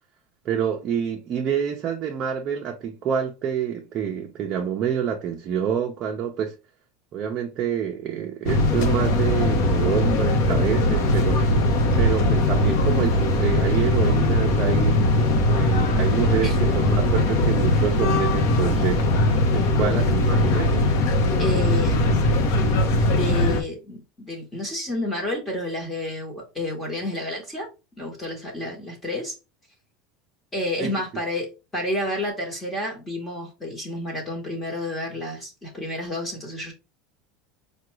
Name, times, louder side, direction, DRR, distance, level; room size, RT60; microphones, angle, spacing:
voice 1, 0.4-6.5 7.1-11.4 12.0-15.0 15.5-19.0 19.5-20.9 30.8-30.9, right 8 dB, 30° right, 0.5 m, -27 dB
sound 1, 8.5-23.6, left 1 dB, 55° left, 0.8 m, -20 dB
voice 2, 21.4-22.4 23.1-27.7 28.0-29.4 30.5-36.7, left 1 dB, 10° left, 1.0 m, -30 dB
4.9 x 2.2 x 3.0 m
supercardioid pair, 165°, 0 cm